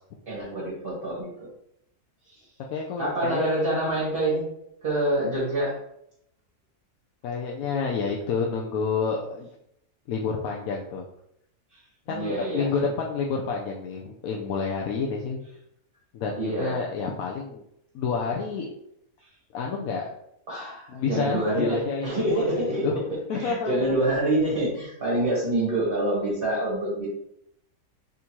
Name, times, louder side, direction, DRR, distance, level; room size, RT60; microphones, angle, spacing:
voice 1, 0.3-1.3 2.2-2.5 3.0-4.4 4.8-5.7 11.7-11.8 12.1-12.9 16.4-16.8 20.5-23.0 23.3-27.1, right 1 dB, 40° right, -7 dB, 1.3 m, -26 dB
voice 2, 2.7-3.5 7.2-9.5 10.1-11.0 12.1-15.4 16.1-17.6 17.9-18.7 19.5-20.1 20.9-22.9 23.3-23.9, left 5 dB, 75° left, -1 dB, 1.0 m, -29 dB
3.7 x 2.7 x 4.4 m, 0.76 s
omnidirectional pair, 1.5 m